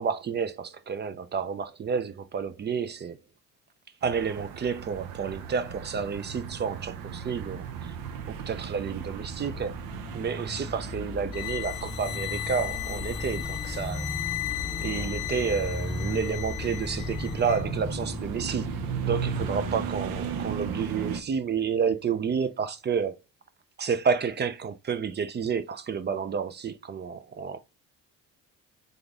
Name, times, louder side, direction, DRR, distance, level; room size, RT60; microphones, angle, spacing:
voice 1, 0.0-3.2 4.0-7.9 8.3-9.8 10.1-14.1 14.8-18.7 19.0-23.1 23.8-27.6, right 6 dB, 30° right, 0.5 m, -30 dB
sound 1, 4.0-21.2, right 7 dB, 90° right, 0.7 m, -37 dB
sound 2, 9.0-21.6, left 2 dB, 5° left, 1.1 m, -37 dB
sound 3, 11.3-17.6, left 18 dB, 75° left, 0.6 m, -36 dB
3.9 x 3.5 x 3.6 m
cardioid pair, 110°, 34 cm